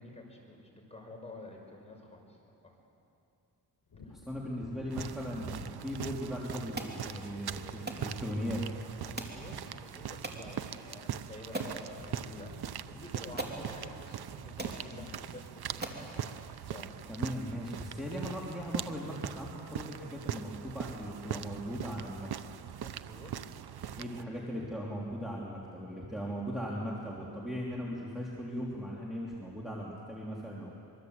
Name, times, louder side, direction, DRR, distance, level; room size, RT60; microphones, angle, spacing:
voice 1, 0.0-2.4 2.6-2.7 4.1-4.2 9.0-16.4 16.7-17.0 22.8-23.3 23.6-24.3, left 2 dB, 15° left, 0 dB, 5.7 m, -49 dB
Wind / Thunder, 3.9-11.5 11.7-19.0 19.4-19.5, left 4 dB, 70° left, 4.3 m, -54 dB
voice 2, 4.1-8.6 17.1-22.3 24.0-30.8, equal, ahead, -5 dB, 3.3 m, -38 dB
sound 1, 4.9-24.2, right 9 dB, 80° right, 0.8 m, -41 dB
sound 2, 6.8-7.0 7.9-8.1 9.2-9.4 10.2-10.4 11.0-11.1 11.5-11.8 12.8-12.9 13.4-13.6 14.3-14.4 14.6-14.8 15.4-15.5 15.8-16.1, right 2 dB, 25° right, 3.0 m, -39 dB
25.5 x 23.0 x 8.2 m, 2.8 s
wide cardioid pair, 90°, 38 cm